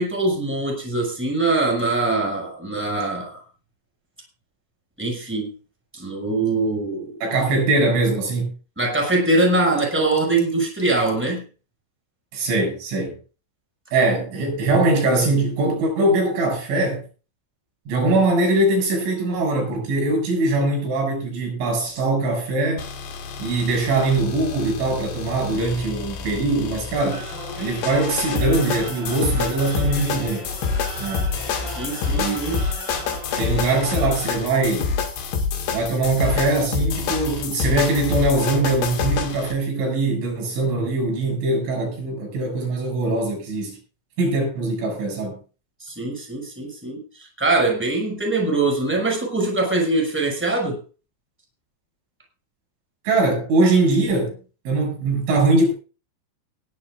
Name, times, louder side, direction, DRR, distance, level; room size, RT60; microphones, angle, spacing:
voice 1, 0.0-3.4 5.0-5.5 5.9-7.1 8.8-11.4 31.7-32.6 45.8-50.8, right 2 dB, ahead, 5.9 m, -23 dB
voice 2, 7.2-8.5 12.3-13.2 13.9-17.0 17.9-22.9 23.4-27.3 27.6-30.5 31.0-31.3 32.1-32.4 33.4-34.9 35.7-43.8 44.2-45.4 53.1-54.4 54.7-55.7, right 2 dB, 85° right, 9.5 m, -22 dB
sound 1, 22.8-39.5, left 5 dB, 70° left, 4.1 m, -27 dB
sound 2, 27.1-34.3, right 2 dB, 25° right, 5.3 m, -37 dB
19.5 x 13.0 x 2.5 m
omnidirectional pair, 5.4 m